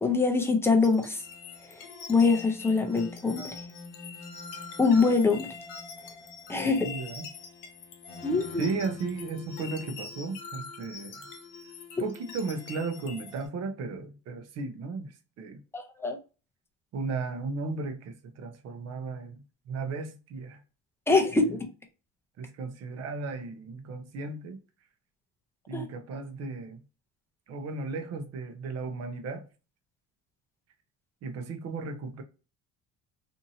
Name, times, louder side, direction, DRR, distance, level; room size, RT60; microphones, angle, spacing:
voice 1, 0.0-1.2 2.1-3.4 4.8-5.5 6.5-6.9 8.2-8.7 15.7-16.2 21.1-21.7 25.7-25.9, left 4 dB, 10° left, 0.5 m, -24 dB
sound 1, 0.8-13.5, left 5 dB, 75° left, 0.9 m, -43 dB
voice 2, 6.6-7.2 8.6-11.3 12.0-15.6 16.9-20.6 22.4-24.6 25.7-26.8 27.5-29.5 31.2-32.2, right 4 dB, 50° right, 0.6 m, -35 dB
2.7 x 2.7 x 2.7 m
cardioid pair, 125°, 33 cm